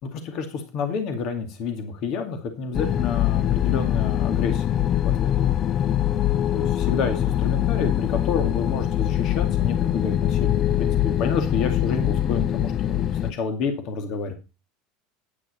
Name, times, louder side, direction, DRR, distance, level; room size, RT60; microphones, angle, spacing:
voice 1, 0.0-5.3 6.5-14.3, left 5 dB, 55° left, 6 dB, 2.3 m, -29 dB
sound 1, 2.7-13.3, left 11 dB, 35° left, 0.5 m, -23 dB
10.5 x 6.1 x 5.5 m, 0.29 s
supercardioid pair, 115°, 0 cm